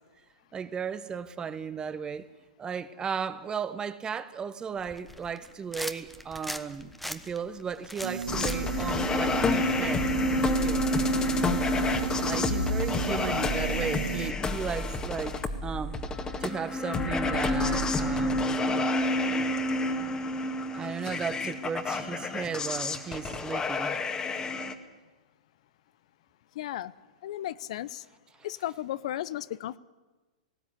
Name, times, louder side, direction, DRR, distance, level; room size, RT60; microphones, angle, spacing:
voice 1, 0.5-2.3 2.6-10.1 10.4-10.9 12.2-15.4 15.6-16.0 16.4-18.9 20.7-24.0, right 6 dB, 20° right, 1.2 m, -35 dB
sound 1, 4.8-9.9, left 1 dB, ahead, 1.2 m, -41 dB
sound 2, 8.0-14.3, right 6 dB, 85° right, 0.7 m, -35 dB
sound 3, 8.3-24.7, left 2 dB, 20° left, 1.8 m, -29 dB
voice 2, 26.6-26.9 27.2-28.0 28.4-29.8, left 13 dB, 60° left, 0.7 m, -34 dB
18.5 x 16.5 x 9.8 m
hypercardioid pair, 110°, 4 cm